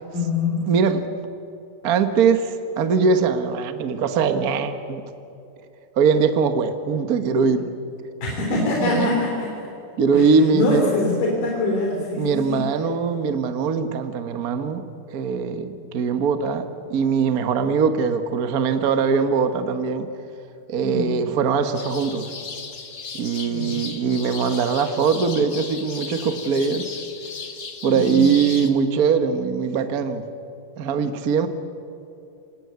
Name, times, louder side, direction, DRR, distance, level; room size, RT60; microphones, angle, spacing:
voice 1, 0.1-0.7 8.2-9.7 10.1-12.6 20.8-21.2 23.4-23.8 27.8-28.3, left 2 dB, 75° left, -1 dB, 5.0 m, -24 dB
voice 2, 0.7-1.0 1.8-5.0 6.0-7.7 8.8-9.1 10.0-10.9 12.2-16.6 16.9-20.1 20.7-22.3 23.1-27.0 27.8-30.2 30.8-31.5, right 5 dB, 75° right, 8 dB, 0.8 m, -21 dB
sound 1, 21.7-28.7, left 5 dB, 40° left, 1.4 m, -36 dB
26.5 x 18.0 x 9.4 m, 2.8 s
omnidirectional pair, 3.8 m